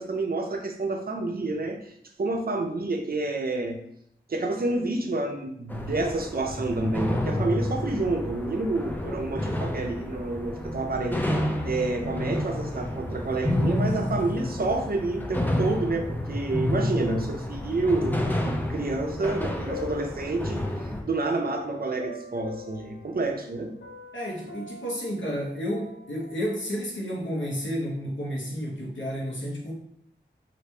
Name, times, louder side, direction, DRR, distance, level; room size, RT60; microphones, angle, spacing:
voice 1, 0.0-1.9 2.2-3.8 4.3-11.2 11.6-23.7, right 2 dB, 55° right, 3 dB, 0.5 m, -29 dB
sound 1, 5.7-21.0, left 1 dB, 10° left, 0.4 m, -30 dB
sound 2, 19.5-20.9 21.5-23.5 23.8-26.8, left 4 dB, 70° left, 0.4 m, -44 dB
voice 2, 24.1-29.7, equal, 90° left, -2 dB, 0.9 m, -31 dB
3.0 x 2.5 x 3.2 m, 0.72 s
wide cardioid pair, 70°, 19 cm